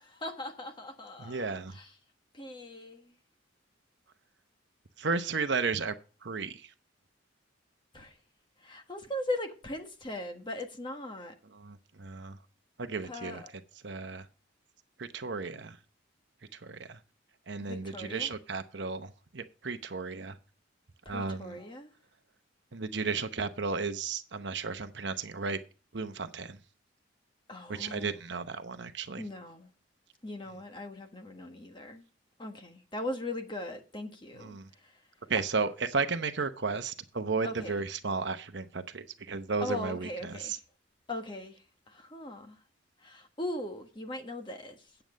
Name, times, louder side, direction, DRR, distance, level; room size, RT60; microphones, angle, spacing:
voice 1, 0.0-1.9 2.3-3.1 7.9-8.1 8.6-11.3 13.0-13.5 17.6-18.3 21.0-21.9 27.5-28.2 29.2-29.7 30.2-32.0 32.4-35.0 37.4-37.8 39.6-40.6 41.1-42.6 43.0-44.8, left 1 dB, 25° left, 1.4 m, -39 dB
voice 2, 1.2-1.8 5.0-5.9 6.2-6.7 11.5-12.4 12.8-13.4 13.8-14.3 15.0-15.8 16.5-17.0 17.5-20.4 21.1-21.6 22.7-25.6 25.9-26.6 27.7-29.2 34.4-34.7 35.3-40.6, right 4 dB, 60° right, 0.8 m, -34 dB
9.3 x 7.9 x 5.1 m
head